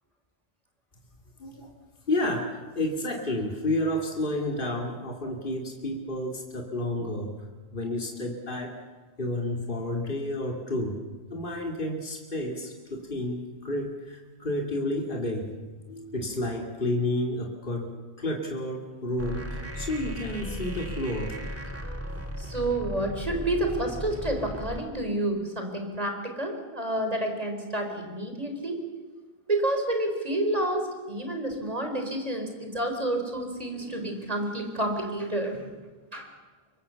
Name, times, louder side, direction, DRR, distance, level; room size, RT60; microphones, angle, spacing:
voice 1, 1.4-1.7 2.1-7.3 7.7-8.7 9.2-11.0 11.3-15.5 15.9-17.9 18.2-19.5 19.7-21.3, left 1 dB, 60° left, 1 dB, 2.8 m, -30 dB
sound 1, 19.2-24.8, equal, 15° right, 2.2 m, -36 dB
voice 2, 22.4-28.8 29.5-35.6 36.1-36.3, right 1 dB, 35° right, 4 dB, 4.3 m, -29 dB
25.5 x 22.5 x 7.0 m, 1.3 s
omnidirectional pair, 1.0 m